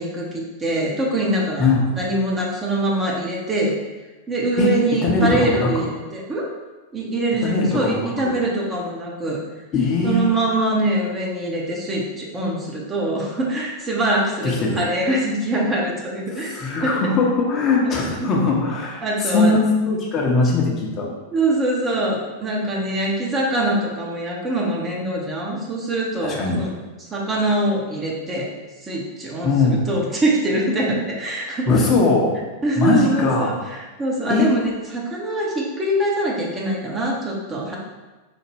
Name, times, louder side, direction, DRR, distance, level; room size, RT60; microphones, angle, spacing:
voice 1, 0.0-1.7 1.9-3.7 4.3-6.5 6.9-9.4 10.0-16.5 16.8-16.9 17.8-18.3 19.0-19.6 21.3-26.7 27.0-28.5 28.8-29.5 29.8-31.7 32.6-37.8, right 1 dB, 20° right, -3 dB, 0.7 m, -23 dB
voice 2, 4.6-5.7 7.4-8.3 9.7-10.2 14.4-14.8 16.3-19.6 19.9-21.1 26.2-26.6 29.4-29.9 31.7-32.4 32.7-33.6 34.3-34.5, left 3 dB, 30° left, -2 dB, 0.7 m, -20 dB
4.1 x 2.1 x 3.3 m, 1.2 s
figure-of-eight pair, 90°, 0 cm